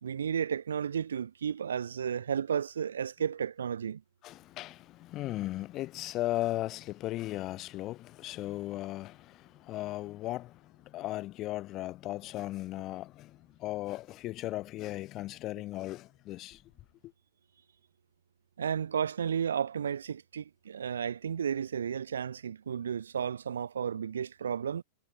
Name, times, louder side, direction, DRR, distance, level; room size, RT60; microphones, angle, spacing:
voice 1, 0.0-4.0 18.6-24.8, right 8 dB, 70° right, 0.5 m, -33 dB
voice 2, 4.2-16.6 17.0-17.1, left 16 dB, 35° left, 0.7 m, -37 dB
figure-of-eight pair, 90°, 0 cm